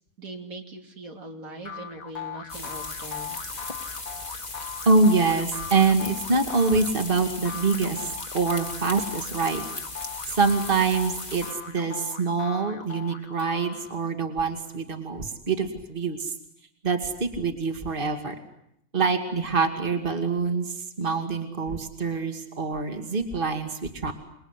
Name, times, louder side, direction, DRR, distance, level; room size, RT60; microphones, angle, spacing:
voice 1, 0.2-3.4, right 2 dB, 75° right, 3 dB, 3.3 m, -41 dB
sound 1, 1.6-14.2, left 8 dB, 75° left, 2.1 m, -40 dB
sound 2, 2.5-11.5, left 2 dB, 35° left, 2.2 m, -37 dB
voice 2, 4.9-9.7 10.3-16.3 16.8-18.3 18.9-24.1, right 4 dB, 40° right, 7 dB, 2.5 m, -25 dB
28.0 x 21.5 x 9.9 m, 0.76 s
omnidirectional pair, 1.5 m